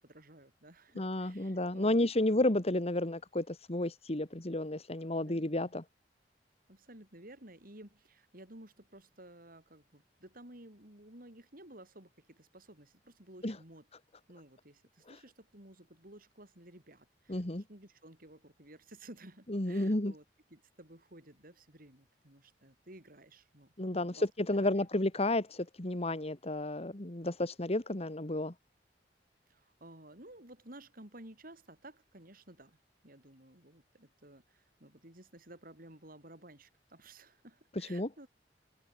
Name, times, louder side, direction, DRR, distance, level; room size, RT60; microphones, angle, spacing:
voice 1, 0.0-2.4 5.2-5.8 6.7-13.9 14.3-20.2 20.5-24.3 24.5-24.9 29.5-32.8 33.0-38.3, right 1 dB, 55° right, 7.5 m, -54 dB
voice 2, 1.0-5.8 13.4-13.6 15.1-15.2 17.3-17.6 19.5-20.1 23.8-28.5 37.8-38.1, left 1 dB, 35° left, 1.8 m, -32 dB
head